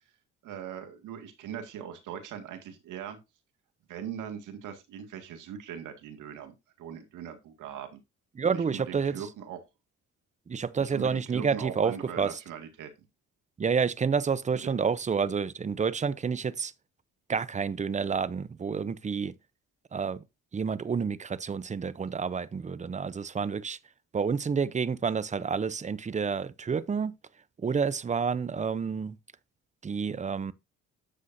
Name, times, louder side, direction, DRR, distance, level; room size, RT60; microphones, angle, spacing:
voice 1, 0.4-3.2 3.9-8.0 8.5-9.6 10.9-12.9 14.6-14.7, right 8 dB, 85° right, 2.0 m, -40 dB
voice 2, 8.4-9.3 10.5-12.4 13.6-16.7 17.3-19.3 19.9-20.2 20.5-23.8 24.1-27.1 27.6-29.2 29.8-30.5, right 6 dB, 25° right, 0.6 m, -29 dB
9.8 x 7.3 x 2.6 m
cardioid pair, 90°, 30 cm